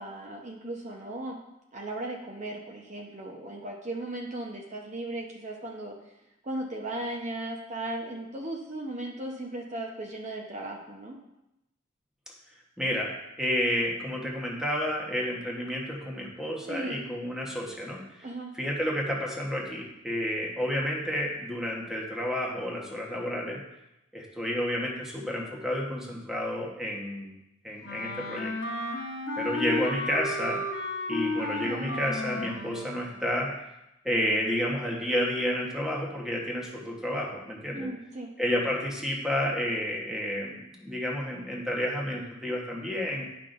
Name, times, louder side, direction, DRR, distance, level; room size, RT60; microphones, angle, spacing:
voice 1, 0.0-1.4 1.7-5.9 6.4-11.2 16.6-17.0 18.2-18.5 37.7-38.3, right 1 dB, 40° right, 0 dB, 0.9 m, -36 dB
voice 2, 12.8-18.2 18.5-23.6 24.1-27.3 27.6-28.5 29.4-30.6 31.1-33.5 34.0-37.9 38.4-43.2, equal, 5° right, -3 dB, 1.2 m, -30 dB
Wind instrument woodwind instrument, 27.8-33.1, left 2 dB, 60° left, 1.1 m, -33 dB
10.5 x 5.7 x 2.6 m, 0.88 s
head